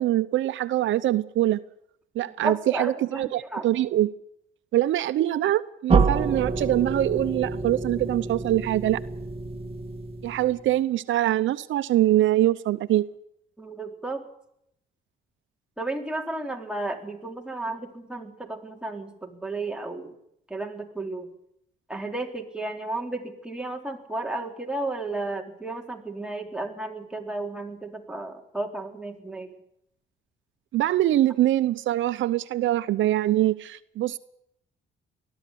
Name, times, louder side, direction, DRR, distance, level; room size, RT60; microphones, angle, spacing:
voice 1, 0.0-1.6 2.2-4.1 4.7-9.0 10.2-13.0 30.7-34.2, right 14 dB, 75° right, 0.8 m, -23 dB
voice 2, 2.4-3.7 13.6-14.2 15.8-20.1 20.5-21.3 21.9-29.5, right 2 dB, 5° right, 3.9 m, -33 dB
sound 1, 5.9-10.7, right 4 dB, 30° right, 2.1 m, -27 dB
20.0 x 13.0 x 9.9 m
cardioid pair, 90°, 20 cm